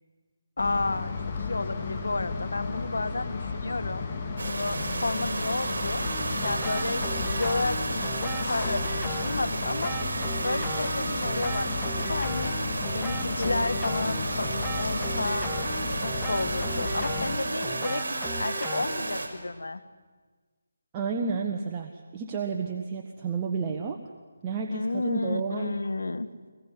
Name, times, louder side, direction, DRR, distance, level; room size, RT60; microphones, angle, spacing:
voice 1, 0.6-4.1 4.5-6.0 6.4-10.0 10.4-12.5 12.9-15.5 16.0-19.8 24.7-26.3, left 2 dB, 80° left, 13 dB, 1.7 m, -32 dB
sound 1, 0.6-17.4, left 4 dB, 30° left, 3.4 m, -34 dB
sound 2, 4.4-19.3, right 2 dB, 60° right, 5.0 m, -32 dB
sound 3, 6.0-19.2, equal, 5° left, 1.9 m, -37 dB
voice 2, 20.9-24.0 24.4-25.8, right 5 dB, 20° right, 2 dB, 1.3 m, -31 dB
24.5 x 21.5 x 9.9 m, 1.4 s
figure-of-eight pair, 160°, 0 cm